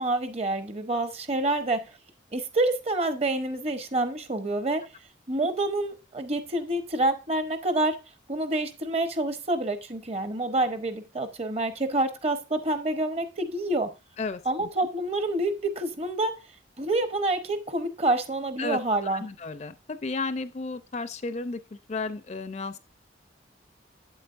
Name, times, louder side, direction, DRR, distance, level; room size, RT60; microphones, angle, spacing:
voice 1, 0.0-1.9 2.3-4.8 5.3-8.0 8.3-13.9 14.4-16.3 16.8-19.2, right 2 dB, 35° right, 0.8 m, -27 dB
voice 2, 14.2-14.7 18.6-22.8, left 3 dB, 35° left, 0.4 m, -33 dB
8.0 x 7.9 x 2.5 m
head